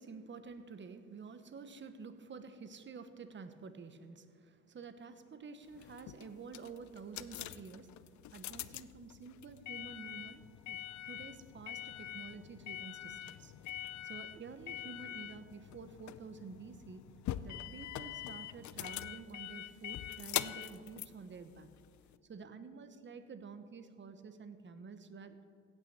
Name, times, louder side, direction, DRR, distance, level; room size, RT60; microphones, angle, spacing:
voice 1, 0.0-7.9 8.3-13.5 13.8-17.0 17.4-21.7 22.3-25.4, right 5 dB, 40° right, 10 dB, 1.1 m, -50 dB
sound 1, 5.7-22.2, left 12 dB, 70° left, 0.6 m, -44 dB
16.0 x 6.4 x 7.4 m, 2.2 s
cardioid pair, 90°, 30 cm